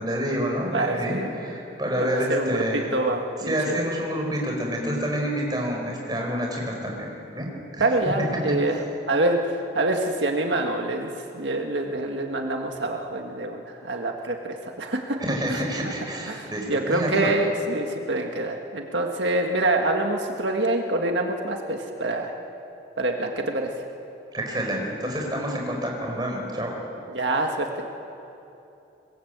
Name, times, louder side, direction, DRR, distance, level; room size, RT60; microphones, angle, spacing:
voice 1, 0.0-2.9 3.5-7.1 7.3-7.5 7.7-7.8 15.2-17.3 24.3-26.7, equal, 25° right, 0 dB, 4.9 m, -28 dB
voice 2, 0.7-1.3 2.0-3.8 7.8-8.8 9.1-15.2 15.5-15.6 16.3-22.3 23.0-23.7 27.1-27.9, right 2 dB, 85° right, 2 dB, 1.8 m, -26 dB
24.5 x 21.0 x 8.2 m, 2.9 s
head